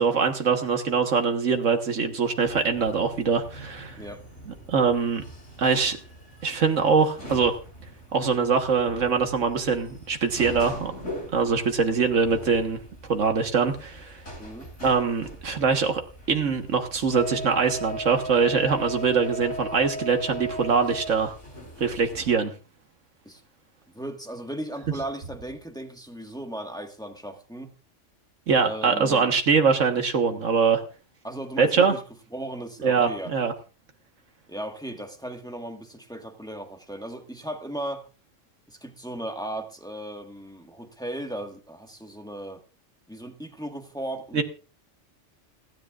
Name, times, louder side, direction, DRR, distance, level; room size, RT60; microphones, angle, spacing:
voice 1, 0.0-4.0 4.5-5.2 5.6-6.0 6.4-7.5 8.1-10.9 11.3-12.8 13.1-14.2 14.8-16.0 16.3-21.3 21.8-22.5 28.5-30.8 31.6-31.9 32.8-33.5 44.3-44.4, right 5 dB, 80° right, 1.7 m, -23 dB
sound 1, 2.4-22.3, equal, 75° left, 8.2 m, -40 dB
voice 2, 14.4-14.7 23.2-23.4 23.9-27.7 28.6-29.3 31.2-32.0 32.3-33.3 34.5-38.0 38.7-42.6 43.1-44.4, right 1 dB, 5° left, 1.5 m, -36 dB
29.0 x 10.5 x 2.4 m
omnidirectional pair, 1.3 m